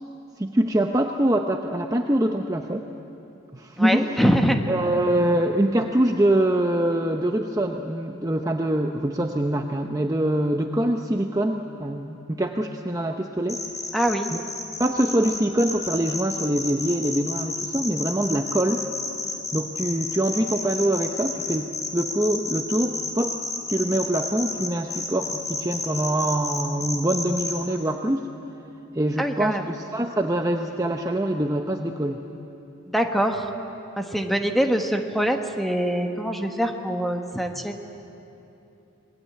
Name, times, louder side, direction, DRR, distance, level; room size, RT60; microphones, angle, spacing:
voice 1, 0.4-2.9 3.5-4.2 4.7-13.6 14.3-14.4 14.8-18.8 19.5-23.4 23.7-28.3 28.9-32.2, right 1 dB, 15° right, 3 dB, 0.7 m, -24 dB
voice 2, 3.8-4.6 13.9-14.3 29.2-29.7 32.9-33.5 34.0-37.9, equal, ahead, 4 dB, 1.3 m, -24 dB
sound 1, 13.5-27.5, left 3 dB, 15° left, 3.0 m, -31 dB
26.5 x 20.0 x 8.6 m, 2.9 s
head